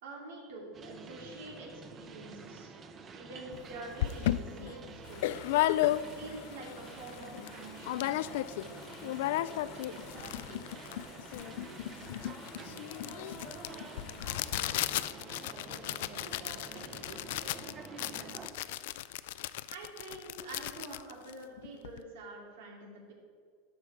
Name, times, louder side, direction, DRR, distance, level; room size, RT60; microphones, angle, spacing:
voice 1, 0.0-2.7 3.1-5.4 6.0-8.2 19.7-23.1, right 2 dB, 90° right, 0 dB, 2.4 m, -47 dB
sound 1, 0.7-18.5, right 4 dB, 25° right, 0.7 m, -49 dB
sound 2, 3.5-3.6 4.0-6.4 6.8-6.9 7.1-7.5 7.8-8.7 8.9-22.0, left 14 dB, 75° left, 0.3 m, -34 dB
sound 3, 5.0-14.9, left 7 dB, 55° left, 1.2 m, -53 dB
voice 2, 9.3-14.3 14.9-18.0, right 4 dB, 70° right, 1 dB, 0.9 m, -54 dB
12.0 x 5.7 x 4.7 m, 2.1 s
supercardioid pair, 150°, 0 cm